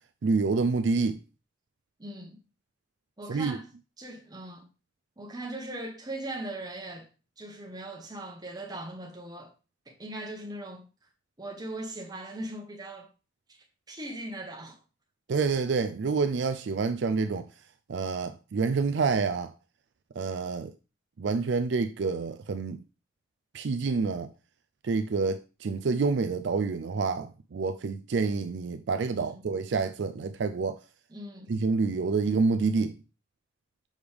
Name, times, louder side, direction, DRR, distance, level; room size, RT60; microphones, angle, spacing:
voice 1, 0.2-1.2 3.3-3.6 15.3-17.4 17.9-19.5 20.2-20.7 21.2-22.8 23.5-24.3 24.8-30.8 31.5-33.0, right 4 dB, 65° right, 0.4 m, -28 dB
voice 2, 2.0-2.4 3.2-3.7 4.0-4.7 5.2-7.1 7.4-9.5 9.9-10.9 11.4-13.1 13.5-14.8 29.2-29.4 31.1-31.6, right 1 dB, 20° right, 1.2 m, -39 dB
6.4 x 5.1 x 3.5 m
head